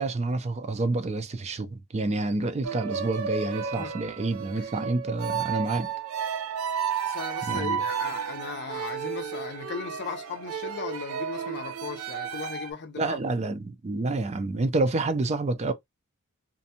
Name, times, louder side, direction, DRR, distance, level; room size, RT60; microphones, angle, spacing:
voice 1, 0.0-5.9 7.5-7.8 13.0-15.7, right 2 dB, 30° right, 0.4 m, -28 dB
sound 1, 2.6-12.7, right 7 dB, 85° right, 0.5 m, -32 dB
voice 2, 7.1-13.2, left 5 dB, 55° left, 0.6 m, -37 dB
2.5 x 2.2 x 2.7 m
head